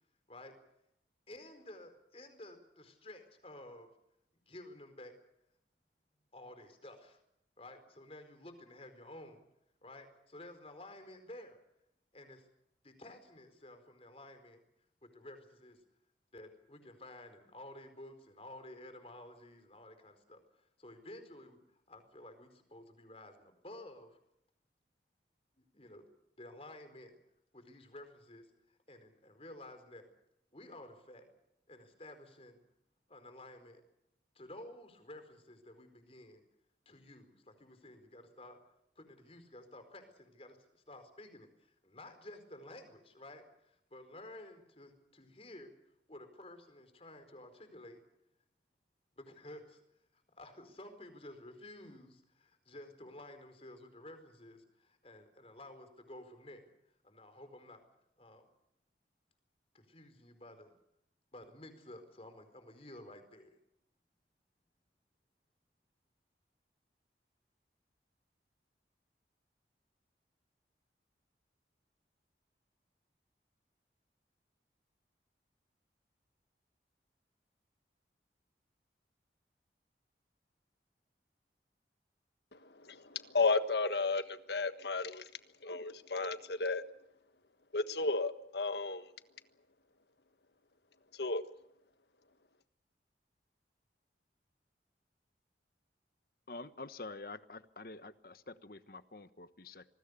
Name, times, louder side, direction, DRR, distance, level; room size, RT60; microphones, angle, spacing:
voice 1, 1.3-3.9 4.5-5.1 6.3-7.2 7.6-9.4 9.8-11.6 12.1-12.5 12.8-14.6 15.1-15.8 16.3-21.6 21.9-24.2 25.6-26.0 26.4-27.2 27.5-28.5 28.9-30.1 30.5-31.3 31.7-32.6 33.1-33.8 34.3-36.4 36.8-38.6 39.0-45.7 46.1-48.0 49.2-49.8 50.1-56.7 57.0-57.8 58.2-58.4 59.7-60.7 61.3-63.6, left 1 dB, 35° left, 8 dB, 4.6 m, -52 dB
voice 2, 82.5-85.3 85.6-86.8 87.7-89.1 91.1-91.4, left 3 dB, 75° left, 10 dB, 1.5 m, -33 dB
voice 3, 96.5-99.8, left 3 dB, 55° left, 12 dB, 1.2 m, -47 dB
27.0 x 20.5 x 6.8 m, 0.81 s
head